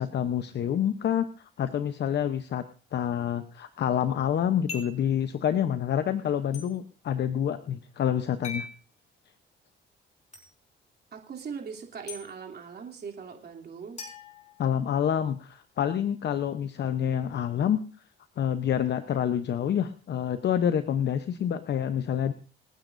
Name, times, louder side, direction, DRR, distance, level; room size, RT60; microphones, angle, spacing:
voice 1, 0.0-2.6 2.9-8.7 14.6-17.8 18.4-22.3, left 9 dB, 60° left, 10 dB, 0.8 m, -27 dB
sound 1, 4.7-5.1 6.5-6.7 8.4-8.7 10.3-10.5 12.1-12.2 14.0-15.1, left 4 dB, 35° left, 4.9 m, -40 dB
voice 2, 11.1-14.0, right 6 dB, 55° right, 1 dB, 3.0 m, -40 dB
27.5 x 9.2 x 2.6 m, 0.39 s
cardioid pair, 90°, 20 cm